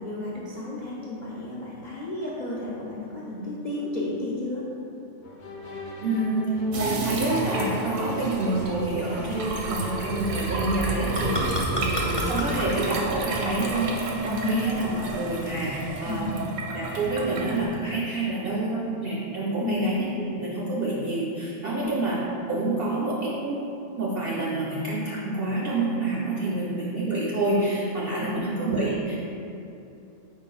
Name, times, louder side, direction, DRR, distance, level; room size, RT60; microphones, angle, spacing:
voice 1, 0.0-4.6 14.3-14.7 14.9-15.0 16.0-16.4 19.6-19.8 21.8-21.9 28.2-28.7, left 2 dB, 75° left, -7 dB, 0.4 m, -32 dB
sound 1, 5.2-14.0, left 1 dB, 60° left, 0.8 m, -38 dB
voice 2, 6.0-16.3 16.7-22.2 22.5-23.7 23.9-29.2, right 2 dB, 60° right, -5 dB, 0.6 m, -28 dB
sound 2, 6.7-17.7, right 2 dB, 85° right, 1.1 m, -32 dB
sound 3, 11.2-16.2, equal, 15° left, 0.8 m, -33 dB
4.9 x 4.5 x 2.3 m, 2.8 s
omnidirectional pair, 1.4 m